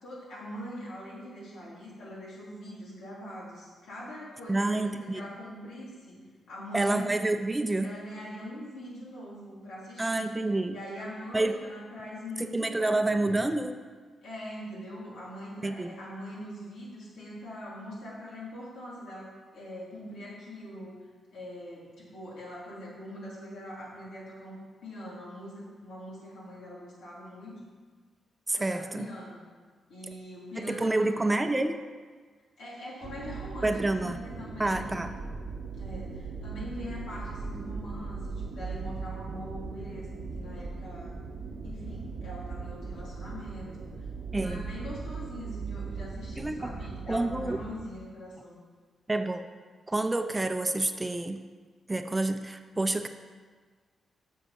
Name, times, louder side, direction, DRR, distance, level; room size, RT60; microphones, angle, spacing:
voice 1, 0.0-7.1 7.8-10.4 10.7-13.0 14.2-21.0 21.3-27.6 28.6-29.4 29.9-31.4 32.6-35.1 35.7-41.1 41.6-43.9 44.4-48.6, equal, 80° left, -6 dB, 3.2 m, -42 dB
voice 2, 4.5-5.2 6.7-7.9 10.0-10.8 11.3-11.6 12.4-13.8 15.6-15.9 28.5-29.1 30.6-31.8 33.6-34.2 34.6-35.1 44.3-44.7 46.4-46.7 47.1-47.6 49.1-49.4 49.9-51.4 51.9-53.1, right 2 dB, 20° right, 8 dB, 0.6 m, -28 dB
sound 1, 33.0-47.8, right 4 dB, 70° right, 0.9 m, -39 dB
7.8 x 6.5 x 6.0 m, 1.5 s
cardioid pair, 60°, 0 cm